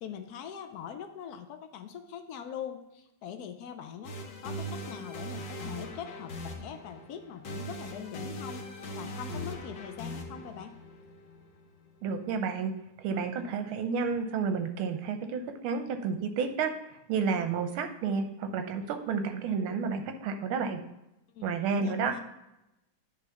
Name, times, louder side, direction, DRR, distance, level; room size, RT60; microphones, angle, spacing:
voice 1, 0.0-4.2 4.4-10.8 21.3-22.2, left 8 dB, 85° left, 7 dB, 0.8 m, -42 dB
sound 1, 4.0-12.0, equal, 60° left, 1.6 m, -40 dB
voice 2, 12.0-12.7 13.0-16.7 17.1-20.8 21.4-22.1, right 5 dB, 85° right, 7 dB, 1.6 m, -31 dB
9.8 x 3.5 x 5.6 m, 0.91 s
omnidirectional pair, 2.3 m